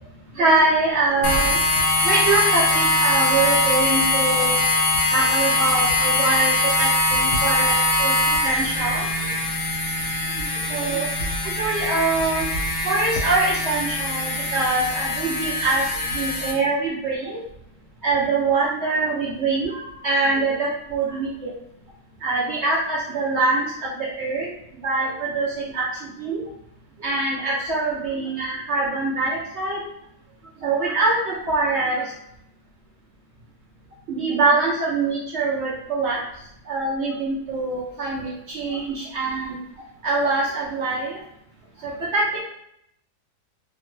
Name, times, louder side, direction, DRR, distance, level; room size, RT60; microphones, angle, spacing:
voice 1, 0.4-1.6 2.0-4.5 5.1-6.5 6.8-9.1 10.7-11.1 11.4-12.4 12.8-15.8 16.1-17.4 18.0-19.8 20.0-21.5 22.2-24.5 24.8-25.9 26.2-26.4 27.0-29.8 30.6-32.0 34.1-36.2 36.7-38.3 38.5-39.5 40.0-41.2 41.8-42.2, right 3 dB, 65° right, -5 dB, 0.6 m, -23 dB
sound 1, 1.2-16.5, left 2 dB, 70° left, 1.1 m, -22 dB
2.8 x 2.2 x 3.0 m, 0.75 s
omnidirectional pair, 1.7 m